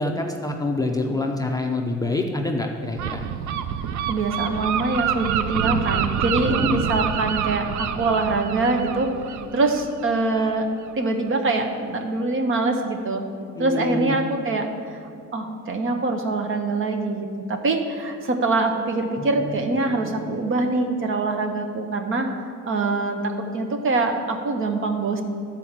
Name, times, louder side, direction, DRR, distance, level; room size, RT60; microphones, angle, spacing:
voice 1, 0.0-3.3 6.6-6.8 13.6-14.2 19.2-19.6 19.9-20.5, left 2 dB, 10° left, 1 dB, 0.5 m, -27 dB
Gull seagull, 3.0-10.5, right 8 dB, 85° right, 0.5 m, -27 dB
voice 2, 4.1-9.1 9.5-10.7 11.0-13.3 13.6-15.0 15.3-22.3 22.7-25.2, right 3 dB, 45° right, 5 dB, 0.9 m, -24 dB
11.0 x 4.5 x 7.3 m, 2.4 s
cardioid pair, 155°, 29 cm